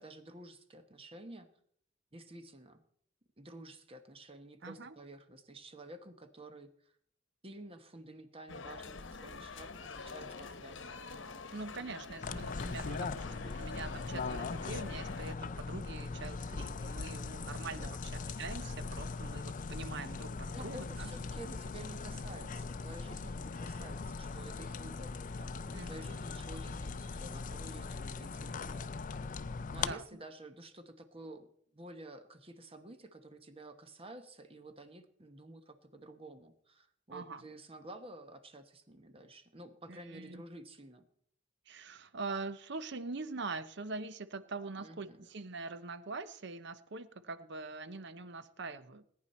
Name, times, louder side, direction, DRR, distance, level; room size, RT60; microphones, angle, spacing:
voice 1, 0.0-1.5 2.1-2.8 3.4-6.9 7.4-10.9 17.7-18.0 20.5-29.1 29.7-31.5 31.7-41.1 44.8-45.3, right 1 dB, 30° right, 8 dB, 1.1 m, -51 dB
voice 2, 4.6-4.9 11.5-21.2 25.7-26.1 29.9-30.0 37.1-37.4 39.9-40.4 41.7-49.0, right 3 dB, 65° right, 13 dB, 0.8 m, -43 dB
sound 1, 8.5-15.4, left 4 dB, 70° left, 1.0 m, -46 dB
sound 2, 12.2-29.9, left 4 dB, 45° left, 0.5 m, -40 dB
20.5 x 9.6 x 4.3 m, 0.64 s
head